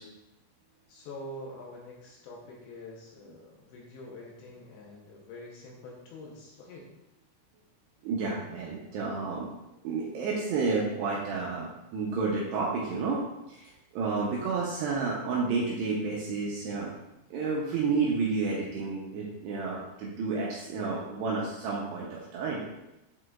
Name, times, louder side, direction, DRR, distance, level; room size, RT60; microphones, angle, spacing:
voice 1, 0.9-6.9, left 1 dB, 75° left, -3 dB, 2.8 m, -45 dB
voice 2, 8.0-9.5 9.8-13.2 13.5-16.9 17.3-22.9, right 4 dB, 80° right, -4 dB, 2.5 m, -31 dB
8.3 x 4.9 x 2.5 m, 0.93 s
omnidirectional pair, 5.6 m